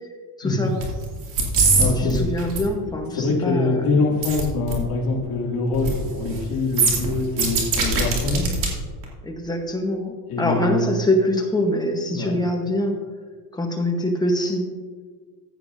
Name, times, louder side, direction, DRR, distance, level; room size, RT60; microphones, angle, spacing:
voice 1, 0.4-0.8 1.7-3.8 9.2-13.0 13.5-14.7, left 1 dB, 10° left, 2 dB, 1.1 m, -24 dB
sound 1, 0.8-1.0 1.3-1.8 2.1-2.6 4.2-4.4 4.7-4.8 5.7-6.0 6.3-6.4 6.7-8.7 9.0-9.1, right 4 dB, 45° right, 2.6 m, -21 dB
voice 2, 1.7-2.2 3.1-8.4 10.3-11.0 12.1-12.4, left 3 dB, 45° left, -2 dB, 2.6 m, -24 dB
15.0 x 8.2 x 2.7 m, 1.5 s
cardioid pair, 155°, 46 cm